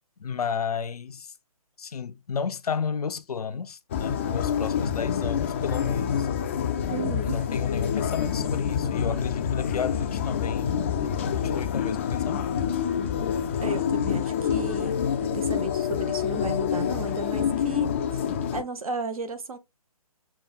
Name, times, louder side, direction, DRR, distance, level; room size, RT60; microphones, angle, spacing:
voice 1, 0.2-1.3 1.8-6.3 7.2-10.9 11.2-12.5, left 6 dB, 80° left, 0.5 m, -32 dB
sound 1, 3.9-18.6, left 8 dB, 20° left, 0.3 m, -27 dB
voice 2, 6.9-7.4 13.6-18.2 18.5-19.6, right 3 dB, 70° right, 0.9 m, -34 dB
6.8 x 2.3 x 2.3 m
figure-of-eight pair, 140°, 19 cm